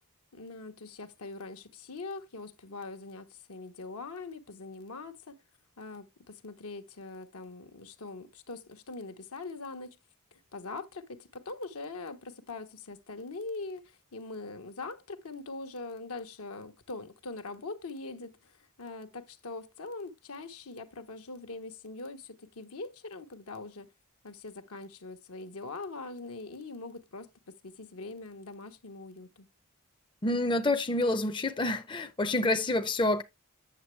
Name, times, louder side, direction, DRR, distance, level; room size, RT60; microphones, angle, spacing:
voice 1, 0.3-5.4 5.8-10.0 10.3-23.9 24.2-29.5, left 3 dB, 75° left, 1.0 m, -42 dB
voice 2, 30.2-33.2, left 2 dB, 20° left, 0.6 m, -28 dB
8.7 x 6.9 x 3.2 m
head